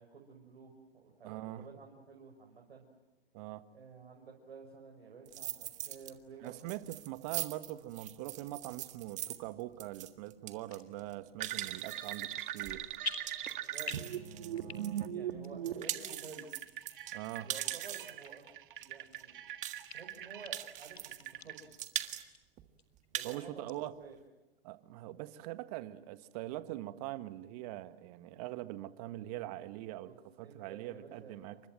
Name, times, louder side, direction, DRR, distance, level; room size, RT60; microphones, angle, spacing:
voice 1, 0.0-2.9 3.7-6.6 13.6-14.0 14.6-16.5 17.4-18.5 18.8-19.4 19.9-21.7 23.1-24.2 30.0-31.6, right 5 dB, 75° right, 1 dB, 5.7 m, -52 dB
voice 2, 1.2-1.7 3.3-3.6 6.4-12.9 17.1-17.5 23.2-23.9 24.6-30.1 30.4-31.6, right 15 dB, 40° right, 12 dB, 1.6 m, -42 dB
sound 1, 5.3-6.1 6.5-15.1 15.4-18.2 18.8-18.9 19.1-19.2 19.6-20.2 20.5-21.3 21.6-22.2 22.6-22.7 23.0-23.4, right 13 dB, 25° right, 1.6 m, -41 dB
sound 2, 10.7-10.9 11.5-12.0 12.3-12.7 13.0-14.2 14.5-15.1 15.4-15.5 16.2-16.3 16.9-17.0 17.7-17.8 18.2-18.3 18.8-19.5 19.9-20.0 20.4-20.5 20.8-21.5 21.9-22.0 22.3-22.4 22.8-23.3 23.7-23.8, left 3 dB, 85° left, 3.6 m, -44 dB
sound 3, 11.4-21.6, right 11 dB, 55° right, 1.9 m, -41 dB
29.5 x 26.0 x 7.7 m, 1.1 s
hypercardioid pair, 120°, 30 cm